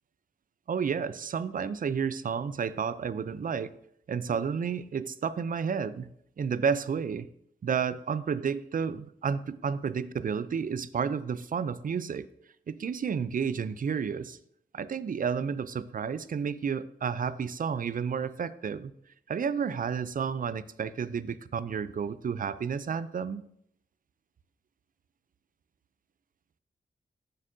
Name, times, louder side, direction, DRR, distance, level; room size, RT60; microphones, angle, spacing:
voice 1, 0.7-3.7 4.1-6.1 6.4-7.3 7.6-12.3 12.7-14.4 14.7-18.9 19.3-23.4, right 6 dB, 45° right, 15 dB, 0.4 m, -31 dB
8.9 x 7.2 x 2.6 m, 0.72 s
wide cardioid pair, 95°, 19 cm